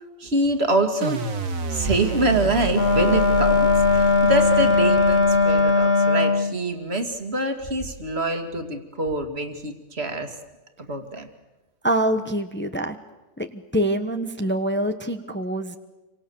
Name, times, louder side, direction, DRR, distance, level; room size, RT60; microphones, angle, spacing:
voice 1, 0.2-1.2 1.7-10.3 10.8-11.3, right 2 dB, 50° right, 6 dB, 2.5 m, -25 dB
sound 1, 1.0-6.1, right 4 dB, 80° right, 1.8 m, -30 dB
Wind instrument woodwind instrument, 2.7-6.6, left 3 dB, 45° left, 1.5 m, -19 dB
voice 2, 11.8-13.0 13.4-15.8, right 1 dB, 10° left, 7 dB, 1.1 m, -25 dB
28.0 x 25.0 x 7.1 m, 1.1 s
omnidirectional pair, 1.4 m